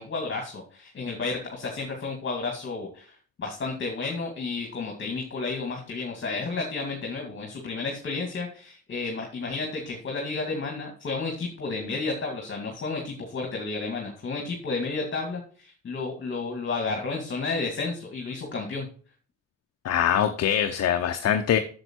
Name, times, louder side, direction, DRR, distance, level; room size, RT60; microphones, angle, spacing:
voice 1, 0.0-18.9, left 3 dB, 40° left, 1 dB, 2.2 m, -32 dB
voice 2, 19.8-21.6, left 9 dB, 55° left, 7 dB, 0.8 m, -23 dB
7.7 x 7.3 x 4.5 m, 0.42 s
cardioid pair, 90°, 30 cm